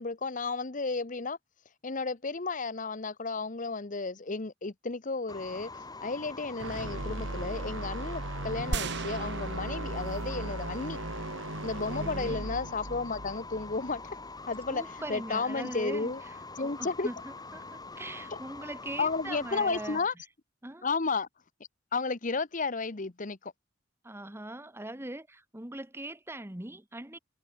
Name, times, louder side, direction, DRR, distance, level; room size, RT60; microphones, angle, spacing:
voice 1, 0.0-1.4 1.8-11.0 11.6-14.0 14.5-14.8 15.1-16.2 16.6-17.1 19.0-20.1 20.8-21.3 21.9-23.5, left 4 dB, 40° left, 1.0 m, -33 dB
sound 1, 5.3-20.0, left 3 dB, 20° left, 6.4 m, -44 dB
sound 2, 6.6-14.7, right 2 dB, 80° right, 2.2 m, -38 dB
sound 3, 8.7-10.5 11.0-11.1, right 4 dB, 60° right, 1.1 m, -37 dB
voice 2, 11.9-12.4 14.7-20.0 20.6-20.9 24.0-27.2, right 1 dB, 10° right, 1.3 m, -41 dB
head